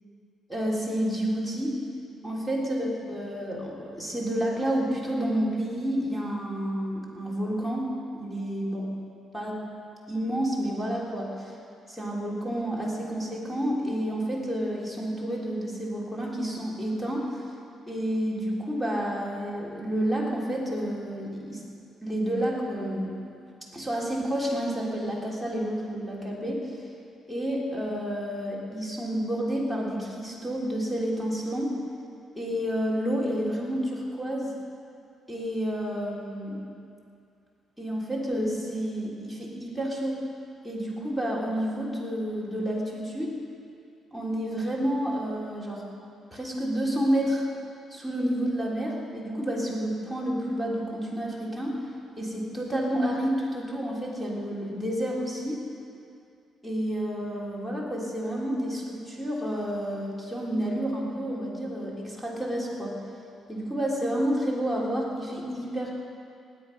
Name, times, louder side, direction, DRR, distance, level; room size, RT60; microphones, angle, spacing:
voice 1, 0.5-1.8 2.2-8.9 9.3-9.6 10.1-11.6 11.9-17.4 17.9-21.6 22.0-23.1 23.7-26.9 27.3-31.7 32.3-34.5 35.3-36.6 37.8-40.2 40.6-43.3 44.1-45.8 46.3-47.4 47.9-51.8 52.2-55.6 56.6-63.0 63.5-65.9, equal, 5° left, -4 dB, 3.5 m, -30 dB
19.0 x 8.5 x 5.6 m, 2.4 s
cardioid pair, 90°, 0 cm